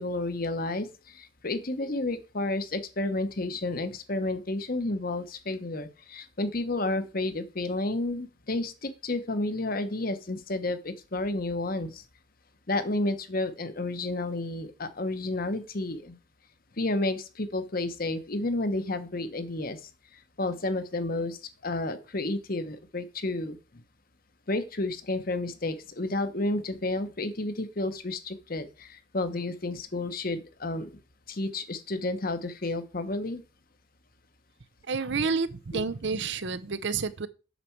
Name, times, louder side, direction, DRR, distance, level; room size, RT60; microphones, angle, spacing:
voice 1, 0.0-12.0 12.7-16.2 16.8-19.8 20.1-23.6 24.5-31.0 31.3-33.4 35.7-35.8, left 2 dB, 45° left, 1.0 m, -31 dB
voice 2, 34.9-37.3, right 4 dB, 60° right, 0.7 m, -29 dB
8.2 x 6.8 x 4.6 m
head